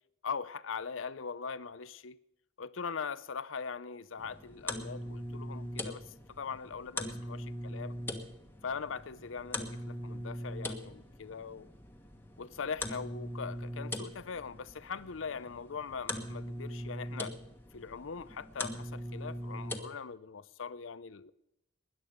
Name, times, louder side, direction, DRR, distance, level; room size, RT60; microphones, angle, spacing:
voice 1, 0.2-2.2 2.6-8.0 8.6-11.7 12.4-17.4 17.7-21.3, left 5 dB, 80° left, 0.6 m, -41 dB
sound 1, 4.2-19.8, left 1 dB, 10° left, 1.4 m, -41 dB
20.5 x 10.5 x 5.1 m
head